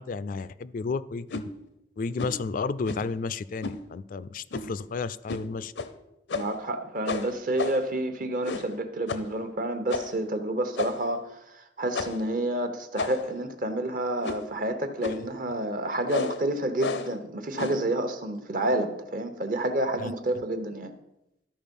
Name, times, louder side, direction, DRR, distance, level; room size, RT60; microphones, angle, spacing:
voice 1, 0.0-1.4 2.0-5.7 20.0-20.1, left 4 dB, 50° left, 15 dB, 0.3 m, -32 dB
sound 1, 1.3-1.5 2.2-2.4 2.9-3.2 3.6-3.8 4.5-4.8 5.3-5.5 5.8-5.9 6.3-6.6 7.1-7.9 8.4-8.8 9.1-9.3 9.9-10.2 10.8-11.1 11.9-12.3 13.0-13.4 14.2-14.6 15.0-15.3 16.1-16.4 16.8-17.2 17.6-17.9, left 3 dB, 90° left, 0.7 m, -33 dB
voice 2, 6.3-20.9, right 1 dB, 50° right, 8 dB, 1.0 m, -29 dB
12.5 x 4.5 x 5.3 m, 0.86 s
head